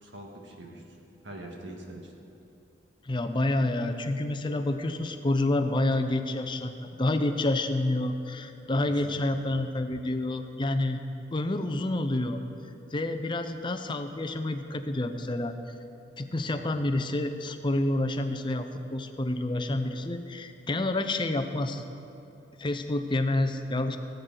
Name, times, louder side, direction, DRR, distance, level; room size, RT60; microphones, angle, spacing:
voice 1, 0.0-1.0 1.2-2.1 8.9-9.4 16.5-16.6, right 1 dB, 75° right, 0 dB, 1.7 m, -44 dB
voice 2, 3.0-11.0 11.3-12.4 12.9-15.5 16.2-21.8 22.6-24.0, left 2 dB, 25° left, 7 dB, 0.6 m, -28 dB
18.0 x 8.1 x 3.9 m, 2.9 s
head